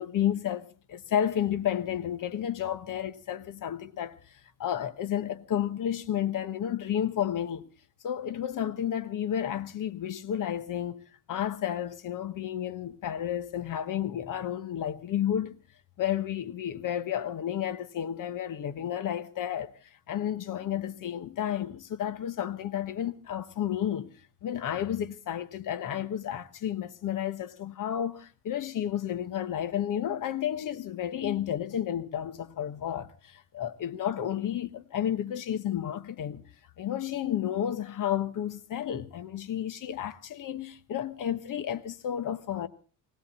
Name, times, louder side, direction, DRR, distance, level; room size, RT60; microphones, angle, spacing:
voice 1, 0.0-4.2 4.6-7.7 8.0-15.6 16.0-19.7 20.1-24.1 24.4-36.5 36.8-42.7, left 10 dB, 45° left, 1.2 m, -31 dB
19.0 x 17.5 x 4.2 m
cardioid pair, 130°, 46 cm